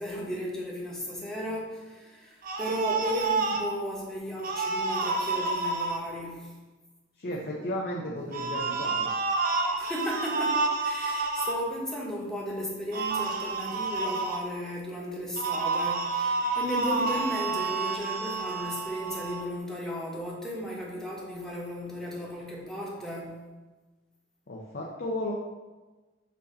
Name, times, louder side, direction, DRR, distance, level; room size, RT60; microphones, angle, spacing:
voice 1, 0.0-6.5 9.8-23.4, equal, 5° left, -4 dB, 1.0 m, -35 dB
sound 1, 2.4-3.7 4.4-6.0 8.3-11.5 12.9-14.4 15.4-19.4, right 3 dB, 45° right, 0.6 m, -29 dB
voice 2, 7.1-9.1 24.5-25.3, left 1 dB, 50° left, -3 dB, 0.7 m, -34 dB
6.1 x 2.8 x 5.5 m, 1.2 s
head